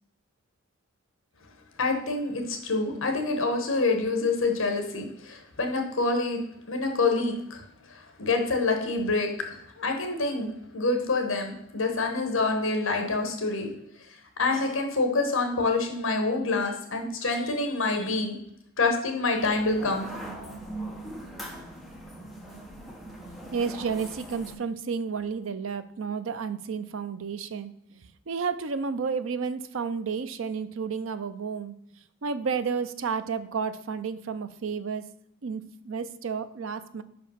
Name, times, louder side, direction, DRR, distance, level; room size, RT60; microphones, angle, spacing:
voice 1, 1.8-6.4 6.7-7.6 7.9-13.7 14.4-18.4 18.8-20.0, left 3 dB, 65° left, 4 dB, 1.2 m, -27 dB
sound 1, 19.4-24.5, right 1 dB, ahead, 0.9 m, -40 dB
voice 2, 23.5-31.7 32.2-35.1 35.4-37.0, right 5 dB, 65° right, 12 dB, 0.5 m, -31 dB
5.5 x 5.2 x 5.6 m, 0.76 s
head